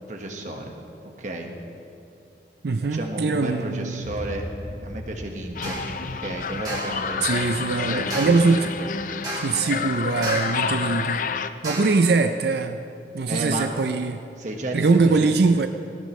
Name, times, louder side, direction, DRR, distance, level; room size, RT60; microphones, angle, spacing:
voice 1, 0.1-0.7 1.2-1.5 2.9-4.4 4.8-5.8 6.2-7.5 7.8-8.2 8.5-8.9 13.3-13.7 14.4-14.9 15.2-15.4, right 1 dB, 45° right, 2 dB, 1.4 m, -32 dB
voice 2, 2.6-4.1 7.2-8.7 9.4-11.2 11.6-12.8 13.1-14.2 14.7-15.7, right 3 dB, 65° right, 8 dB, 0.5 m, -22 dB
sound 1, 4.0-10.2, equal, 75° left, 3.5 m, -40 dB
sound 2, 5.5-11.5, left 5 dB, 50° left, 0.5 m, -29 dB
sound 3, 5.6-5.9 6.7-7.0 8.1-8.6 9.2-9.7 10.2-10.7 11.6-12.1, right 2 dB, 20° right, 2.1 m, -33 dB
18.0 x 17.0 x 3.2 m, 2.5 s
head